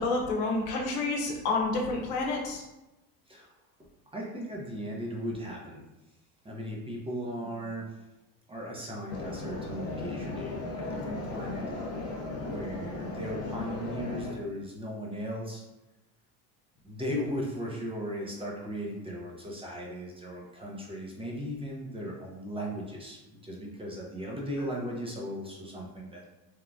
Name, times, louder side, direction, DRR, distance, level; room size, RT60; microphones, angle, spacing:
voice 1, 0.0-2.6, left 3 dB, 90° left, 0 dB, 0.8 m, -29 dB
voice 2, 4.1-5.8 6.4-7.9 8.5-11.6 12.4-15.6 16.8-26.3, equal, 15° right, -2 dB, 0.5 m, -37 dB
sound 1, 9.1-14.3, left 3 dB, 35° left, 0.6 m, -36 dB
3.2 x 2.2 x 2.5 m, 0.99 s
supercardioid pair, 95°, 45 cm